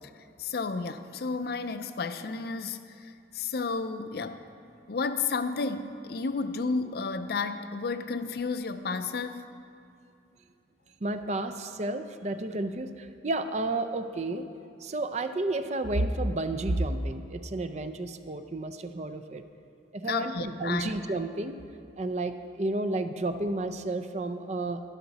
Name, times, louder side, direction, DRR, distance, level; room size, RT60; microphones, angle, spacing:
voice 1, 0.0-4.4 4.9-9.5 20.1-20.9, left 4 dB, 55° left, 10 dB, 0.5 m, -32 dB
voice 2, 11.0-14.4 14.8-19.4 19.9-21.6 22.0-24.8, right 2 dB, 40° right, 8 dB, 0.5 m, -31 dB
12.5 x 11.5 x 4.1 m, 2.5 s
head